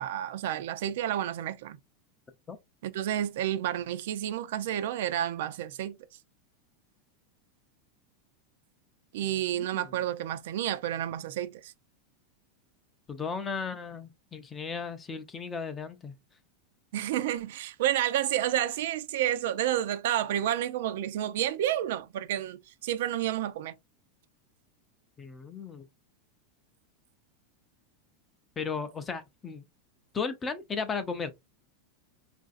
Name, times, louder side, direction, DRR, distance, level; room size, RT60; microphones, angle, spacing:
voice 1, 0.0-1.8 2.8-6.0 9.1-11.7 16.9-23.7, right 12 dB, 70° right, 0.4 m, -30 dB
voice 2, 13.1-16.1 25.2-25.9 28.6-29.7 30.1-31.3, left 5 dB, 15° left, 0.4 m, -35 dB
4.7 x 2.5 x 2.4 m
supercardioid pair, 165°, 0 cm